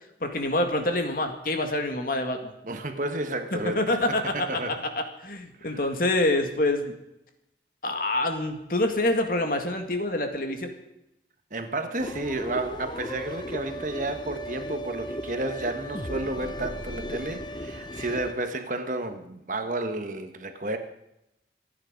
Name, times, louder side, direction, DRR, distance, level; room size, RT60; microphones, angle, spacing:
voice 1, 0.2-2.5 3.5-6.9 7.8-10.7, left 1 dB, 50° left, 5 dB, 2.1 m, -26 dB
voice 2, 2.6-4.0 4.3-4.9 5.6-5.8 11.5-20.8, right 2 dB, 45° right, 7 dB, 1.4 m, -32 dB
sound 1, 12.0-18.3, equal, 25° left, 0.7 m, -36 dB
26.5 x 9.6 x 5.2 m, 0.85 s
head